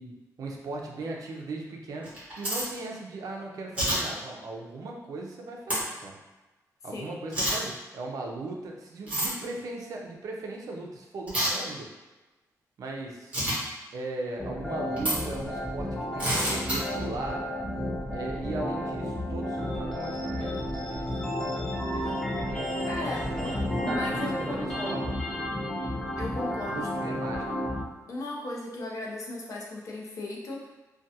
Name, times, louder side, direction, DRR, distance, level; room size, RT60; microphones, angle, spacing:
voice 1, 0.0-6.2 6.8-11.9 12.8-13.4 13.9-17.4 18.1-21.4 21.7-23.6 23.9-25.1 26.6-27.7, right 2 dB, 65° right, 0 dB, 0.4 m, -38 dB
sound 1, 2.0-2.6 3.7-4.0 5.7-5.8 7.3-7.6 9.1-9.3 11.3-11.5 13.3-13.6 15.0-15.1 16.2-16.8, right 1 dB, 20° right, 1.0 m, -27 dB
voice 2, 6.9-7.2 22.9-23.3 23.8-25.1 26.2-27.1 28.1-30.7, left 2 dB, 60° left, -2 dB, 0.5 m, -36 dB
sound 2, 14.4-27.8, left 1 dB, 10° left, 0.4 m, -32 dB
sound 3, 22.6-27.2, left 1 dB, 80° left, 1.0 m, -44 dB
2.3 x 2.2 x 2.7 m, 1.2 s
wide cardioid pair, 145°, 6 cm